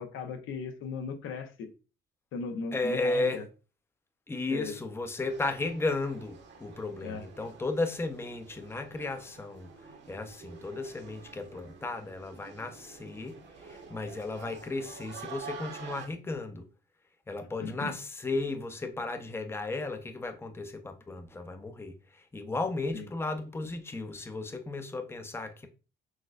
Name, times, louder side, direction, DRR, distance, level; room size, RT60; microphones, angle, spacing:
voice 1, 0.0-1.7 2.3-3.4 4.5-4.8 7.0-7.2 17.6-18.0 22.9-23.1, left 4 dB, 85° left, 0.8 m, -37 dB
voice 2, 2.7-3.4 4.3-16.7 17.3-25.7, left 2 dB, 10° left, 0.6 m, -34 dB
sound 1, 5.2-16.1, right 5 dB, 65° right, 1.1 m, -48 dB
6.2 x 2.1 x 2.4 m
cardioid pair, 90°, 20 cm